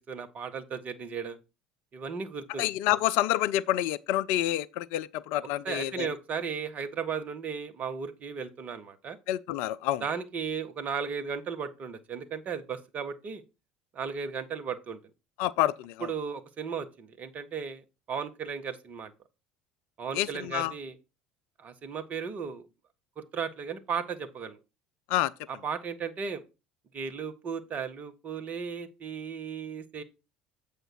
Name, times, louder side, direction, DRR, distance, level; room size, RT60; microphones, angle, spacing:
voice 1, 0.1-1.4 1.9-2.7 5.6-9.2 10.0-13.4 13.9-15.0 16.0-17.8 18.1-19.1 20.0-21.0 21.6-22.6 23.2-24.6 25.5-26.4 26.9-30.0, right 6 dB, 40° right, 0.9 m, -35 dB
voice 2, 2.6-6.1 9.3-10.0 15.4-16.1 20.2-20.7 25.1-25.3, left 14 dB, 55° left, 0.3 m, -28 dB
7.8 x 5.0 x 4.5 m
figure-of-eight pair, 65°, 4 cm